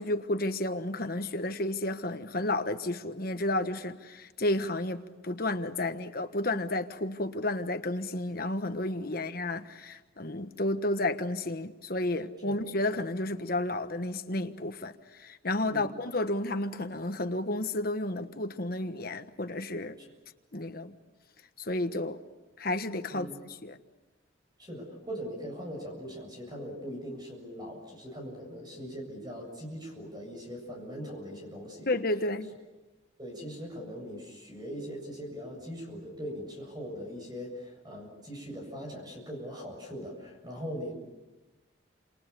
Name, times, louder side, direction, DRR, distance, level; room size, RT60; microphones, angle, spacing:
voice 1, 0.0-20.0 20.5-20.9 21.6-22.2 22.6-23.3 23.6-23.8 31.9-32.5, left 2 dB, 50° left, 8 dB, 1.3 m, -31 dB
voice 2, 24.6-31.9 33.2-40.9, equal, 20° right, 2 dB, 7.7 m, -41 dB
29.5 x 27.5 x 6.9 m, 1.2 s
head